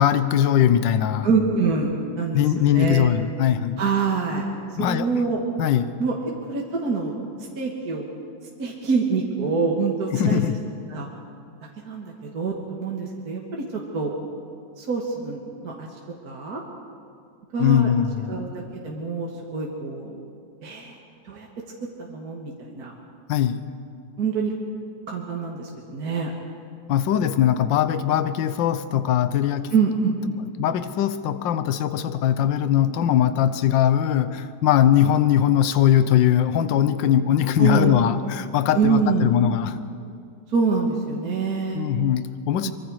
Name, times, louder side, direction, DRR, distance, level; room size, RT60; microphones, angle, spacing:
voice 1, 0.0-1.3 2.3-3.8 4.8-5.1 5.6-6.0 10.1-10.6 17.6-18.4 23.3-23.7 26.9-29.7 30.3-30.4 30.6-39.8 41.7-42.7, left 10 dB, 75° left, 12 dB, 1.5 m, -21 dB
voice 2, 1.2-3.1 3.8-4.5 4.8-5.4 6.0-6.2 6.5-7.1 7.6-8.0 8.6-10.4 10.9-11.1 11.8-13.6 13.9-14.1 14.8-15.9 16.2-16.6 17.5-17.9 18.3-18.5 18.8-20.2 20.6-21.0 21.3-21.5 22.1-22.9 24.2-24.6 25.1-26.3 29.7-30.1 37.6-38.1 38.7-39.3 40.5-41.8 42.6-42.7, right 4 dB, 50° right, -2 dB, 2.1 m, -25 dB
24.5 x 23.5 x 4.8 m, 2.4 s
omnidirectional pair, 2.1 m